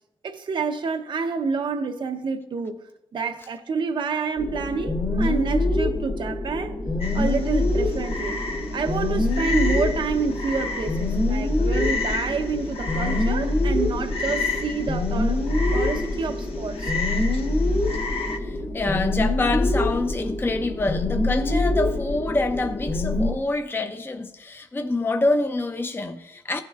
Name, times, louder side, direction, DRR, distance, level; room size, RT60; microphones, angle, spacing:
voice 1, 0.2-2.8 3.1-6.8 7.1-8.4 8.7-15.4 15.7-16.9, right 5 dB, 55° right, 0.5 m, -28 dB
sound 1, 4.4-23.3, left 2 dB, 55° left, 2.3 m, -25 dB
Frog, 7.0-18.4, left 3 dB, 85° left, 0.9 m, -33 dB
voice 2, 18.4-26.6, left 2 dB, 20° left, 0.5 m, -26 dB
15.0 x 7.3 x 2.3 m
cardioid pair, 85°, 10 cm